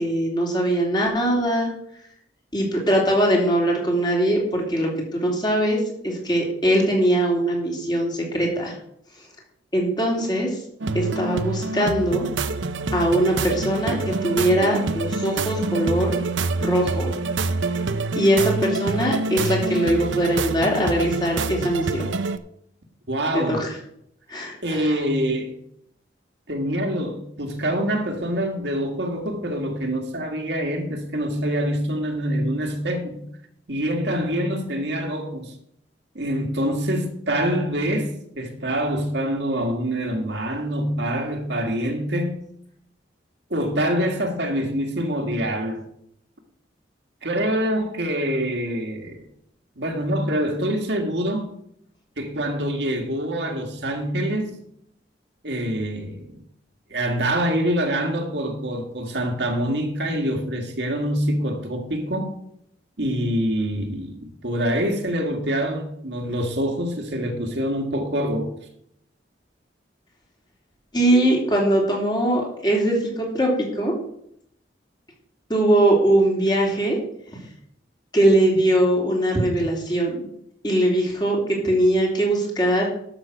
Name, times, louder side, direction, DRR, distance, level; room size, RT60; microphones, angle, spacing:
voice 1, 0.0-1.7 2.5-8.8 9.7-10.6 10.9-12.3 12.9-14.0 14.2-16.1 16.6-17.1 18.1-22.1 23.3-23.7 24.3-24.9 70.9-73.9 75.5-77.0 78.1-80.2 80.6-82.9, right 1 dB, 25° left, 3.2 m, -21 dB
sound 1, 10.8-22.4, right 3 dB, 85° right, 0.7 m, -26 dB
voice 2, 23.1-23.6 24.6-25.5 26.5-33.2 33.7-35.5 36.2-42.4 43.5-45.8 47.2-49.2 49.8-51.5 52.2-54.6 55.4-56.4 56.9-62.3 63.0-68.5, equal, 65° right, 2.0 m, -25 dB
12.5 x 6.3 x 6.3 m
head